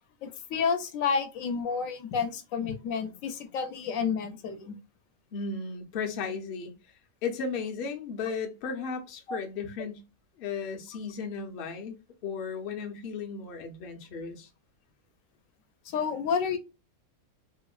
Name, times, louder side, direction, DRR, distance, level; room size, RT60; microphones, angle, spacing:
voice 1, 0.2-4.7 9.3-9.4 15.9-16.6, left 6 dB, 80° left, 1.0 m, -30 dB
voice 2, 5.3-6.7 7.2-10.0 10.4-12.0 12.2-14.5, left 5 dB, 55° left, 0.7 m, -35 dB
3.5 x 2.0 x 2.3 m
omnidirectional pair, 1.4 m